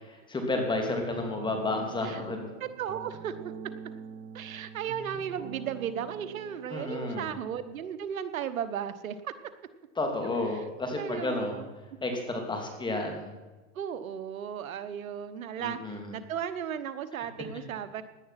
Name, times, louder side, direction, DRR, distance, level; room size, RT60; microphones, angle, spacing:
voice 1, 0.3-2.5 6.7-7.3 10.0-11.6 12.0-13.3 15.6-16.1, left 2 dB, 10° left, 3 dB, 2.9 m, -31 dB
sound 1, 0.9-6.7, right 7 dB, 30° right, 0.9 m, -44 dB
voice 2, 2.6-3.5 4.3-9.3 11.0-11.6 13.7-18.0, right 8 dB, 90° right, 12 dB, 1.2 m, -35 dB
17.0 x 11.0 x 5.9 m, 1.2 s
hypercardioid pair, 135°, 40 cm